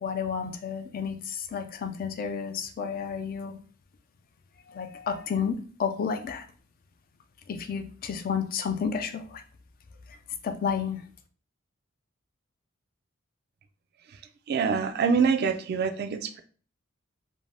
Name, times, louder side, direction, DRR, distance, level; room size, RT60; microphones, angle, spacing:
voice 1, 0.0-3.6 4.7-6.5 7.5-9.4 10.1-10.2 10.4-11.0, left 6 dB, 45° left, 8 dB, 0.3 m, -31 dB
voice 2, 14.5-16.4, right 5 dB, 50° right, 7 dB, 0.3 m, -25 dB
2.6 x 2.1 x 3.2 m, 0.42 s
head